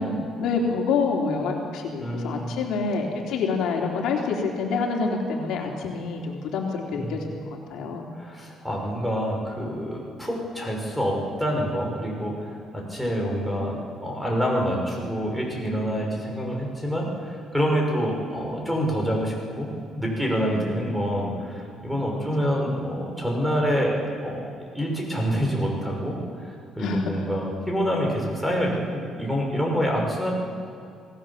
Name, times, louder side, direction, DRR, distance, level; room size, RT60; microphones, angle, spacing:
voice 1, 0.0-7.4 7.7-8.1 20.5-20.7 22.1-22.3 26.8-27.1, left 4 dB, 75° left, 0 dB, 3.2 m, -27 dB
voice 2, 2.0-2.5 6.9-7.3 8.2-13.8 14.0-19.7 19.9-24.4 24.7-30.3, equal, ahead, -1 dB, 5.9 m, -27 dB
26.5 x 18.0 x 7.3 m, 2.3 s
cardioid pair, 110°, 0 cm